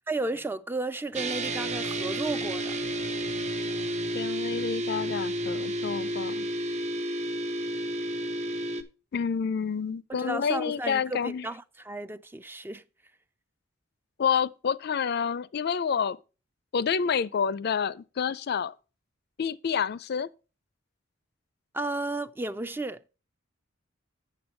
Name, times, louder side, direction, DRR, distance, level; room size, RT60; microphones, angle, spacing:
voice 1, 0.1-2.8 10.1-12.8 21.7-23.0, right 2 dB, 10° right, 0.3 m, -33 dB
sound 1, 1.1-8.8, right 1 dB, 35° right, 0.9 m, -31 dB
voice 2, 4.1-6.5 9.1-11.5 14.2-16.2 16.7-18.7 19.4-20.3, left 6 dB, 55° left, 0.4 m, -28 dB
7.9 x 7.3 x 4.4 m
head